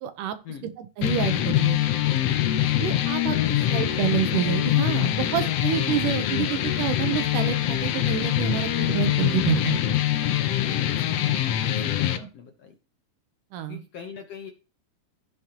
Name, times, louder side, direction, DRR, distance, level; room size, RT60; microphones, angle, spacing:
voice 1, 0.0-0.4 0.8-1.8 2.8-9.8 13.5-13.8, right 10 dB, 75° right, 10 dB, 2.4 m, -28 dB
sound 1, 1.0-12.2, left 12 dB, 80° left, 1.4 m, -24 dB
voice 2, 10.6-12.8 13.7-14.5, left 6 dB, 60° left, 4 dB, 1.7 m, -42 dB
16.5 x 6.4 x 3.0 m, 0.33 s
omnidirectional pair, 4.0 m